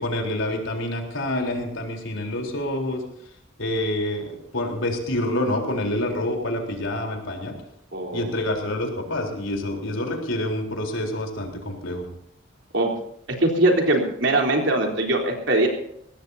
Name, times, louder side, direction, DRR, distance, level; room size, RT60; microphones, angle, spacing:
voice 1, 0.0-3.0 3.6-7.6 8.1-12.0, left 1 dB, 80° left, 1 dB, 3.9 m, -27 dB
voice 2, 7.9-8.3 12.7-12.9 13.4-15.7, right 2 dB, 65° right, 2 dB, 3.7 m, -21 dB
22.0 x 18.0 x 2.8 m, 0.74 s
head